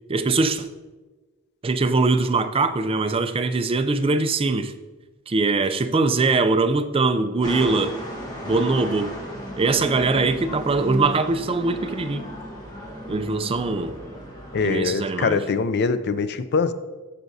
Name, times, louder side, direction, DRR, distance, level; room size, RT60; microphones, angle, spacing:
voice 1, 0.1-0.7 1.6-4.7 5.3-8.0 8.4-9.2 9.6-12.2 13.1-13.9 14.6-15.4, right 3 dB, 25° right, 0.4 m, -22 dB
sound 1, 7.4-14.7, equal, 20° left, 1.4 m, -35 dB
voice 2, 14.5-16.7, left 5 dB, 50° left, 0.4 m, -23 dB
14.0 x 5.9 x 2.7 m
head